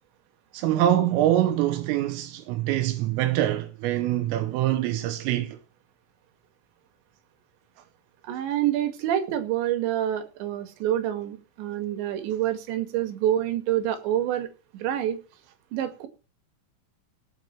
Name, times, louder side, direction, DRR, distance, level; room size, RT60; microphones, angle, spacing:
voice 1, 0.5-5.6, right 13 dB, 85° right, 3.7 m, -24 dB
voice 2, 8.3-14.5 14.7-15.2 15.7-16.1, right 11 dB, 65° right, 4.0 m, -27 dB
17.0 x 6.4 x 5.9 m
omnidirectional pair, 5.8 m